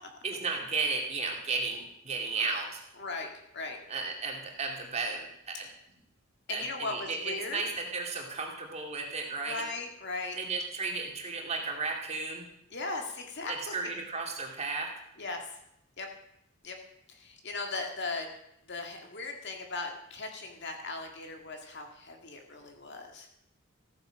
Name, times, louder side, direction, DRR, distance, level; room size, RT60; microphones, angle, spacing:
voice 1, 0.2-2.8 3.9-5.7 6.5-9.6 10.4-12.5 13.5-14.9, right 4 dB, 30° right, 1 dB, 2.4 m, -34 dB
voice 2, 3.0-3.3 3.5-3.8 5.5-5.7 6.5-7.6 9.4-10.4 12.7-13.7 15.2-15.4 16.0-16.1 16.6-16.8 17.1-18.3 18.7-23.3, left 3 dB, 55° left, 3 dB, 2.2 m, -38 dB
14.5 x 9.5 x 6.4 m, 0.79 s
head